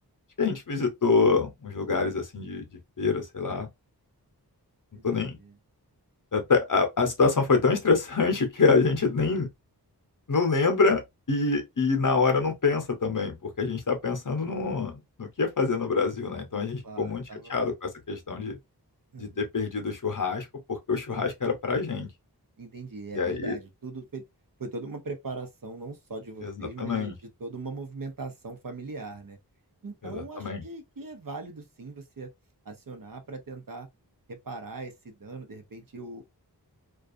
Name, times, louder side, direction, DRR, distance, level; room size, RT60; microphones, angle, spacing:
voice 1, 0.4-3.7 5.0-5.4 6.3-9.5 10.3-11.0 11.3-18.6 19.2-22.1 23.1-23.6 26.4-27.2 30.0-30.6, left 4 dB, 50° left, 0.8 m, -26 dB
voice 2, 16.8-17.5 19.1-19.4 22.6-24.2 24.6-27.1 27.4-29.4 29.8-32.3 32.6-33.9 34.3-36.3, right 3 dB, 55° right, 0.7 m, -40 dB
2.4 x 2.3 x 2.5 m
wide cardioid pair, 45°, 40 cm